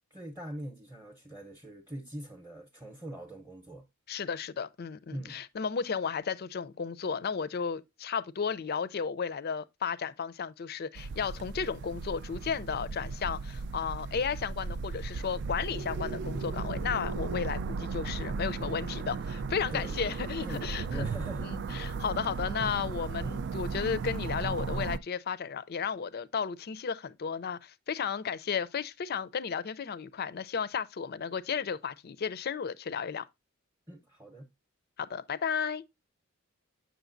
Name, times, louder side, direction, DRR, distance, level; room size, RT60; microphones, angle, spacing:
voice 1, 0.1-3.8 5.1-5.4 19.7-22.0 33.9-34.5, right 1 dB, 10° right, 0.7 m, -42 dB
voice 2, 4.1-21.1 21.4-33.3 35.0-35.8, left 6 dB, 45° left, 0.4 m, -34 dB
sound 1, 11.0-25.0, right 4 dB, 55° right, 0.3 m, -36 dB
sound 2, 15.6-19.3, right 3 dB, 90° right, 0.8 m, -41 dB
8.1 x 6.2 x 2.5 m
head